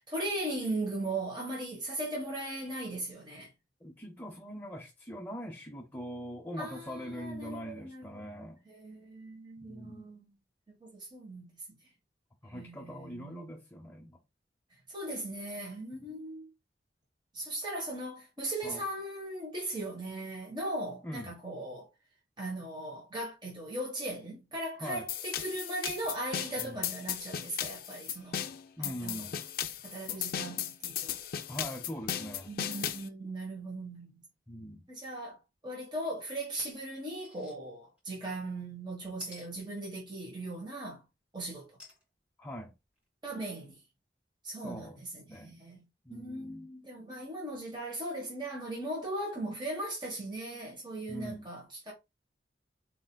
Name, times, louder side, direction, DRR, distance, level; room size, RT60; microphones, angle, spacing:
voice 1, 0.0-3.5 6.6-8.1 8.7-10.3 10.7-11.5 12.5-13.4 14.9-16.5 17.3-21.9 22.4-28.4 28.8-29.3 29.8-31.2 32.5-34.1 34.9-35.4 35.6-41.0 41.3-41.7 43.2-43.8 44.4-45.8 46.1-51.9, right 1 dB, 25° right, 1.2 m, -38 dB
voice 2, 3.8-8.6 9.6-10.1 12.4-14.2 16.0-16.1 18.6-18.8 21.0-21.3 24.8-25.1 26.6-26.9 28.8-29.4 30.1-30.2 31.5-32.5 34.5-34.9 42.4-42.7 44.6-45.0 45.3-45.6 46.0-46.7 51.1-51.5, equal, 10° left, 0.6 m, -42 dB
sound 1, 25.1-33.1, left 9 dB, 55° left, 0.5 m, -36 dB
sound 2, 37.2-37.6 38.0-38.1 39.2-39.5 41.8-42.0 42.6-42.7 43.0-43.1, left 2 dB, 5° right, 2.1 m, -49 dB
4.3 x 3.7 x 2.2 m
head